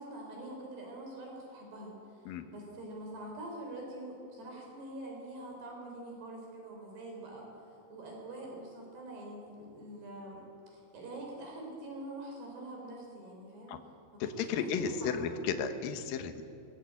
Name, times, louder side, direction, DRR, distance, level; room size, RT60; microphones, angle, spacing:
voice 1, 0.0-13.7 14.1-15.3, right 1 dB, 75° right, 0 dB, 6.6 m, -45 dB
voice 2, 14.2-16.4, left 6 dB, 65° left, 6 dB, 2.8 m, -34 dB
22.0 x 21.5 x 8.5 m, 2.5 s
omnidirectional pair, 4.8 m